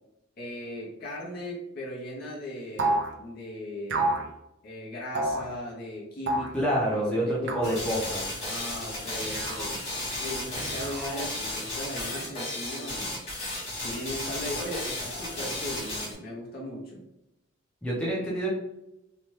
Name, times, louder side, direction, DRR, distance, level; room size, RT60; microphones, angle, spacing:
voice 1, 0.4-4.3 4.6-7.8 8.4-9.9 10.2-13.2 13.8-17.0, left 1 dB, 50° left, -5 dB, 0.7 m, -38 dB
sound 1, 2.8-3.1 3.9-4.3 5.1-5.5 6.3-6.6 7.5-7.8 9.2-9.7 10.6-11.3, right 2 dB, 60° right, 0.4 m, -29 dB
voice 2, 6.5-8.3 17.8-18.5, equal, 5° left, -6 dB, 0.6 m, -27 dB
sound 2, 7.6-16.1, left 1 dB, 30° left, 1.1 m, -34 dB
2.8 x 2.2 x 3.2 m, 0.88 s
head